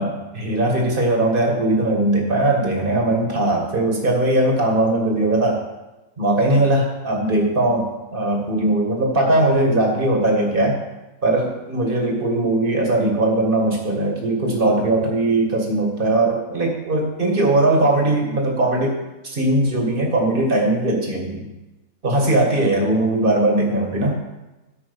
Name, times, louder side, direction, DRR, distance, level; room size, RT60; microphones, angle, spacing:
voice 1, 0.0-5.6 6.2-10.8 11.2-19.0 19.2-21.5 22.0-24.2, right 2 dB, 40° right, 0 dB, 2.0 m, -19 dB
13.0 x 5.6 x 5.3 m, 1.0 s
omnidirectional pair, 1.5 m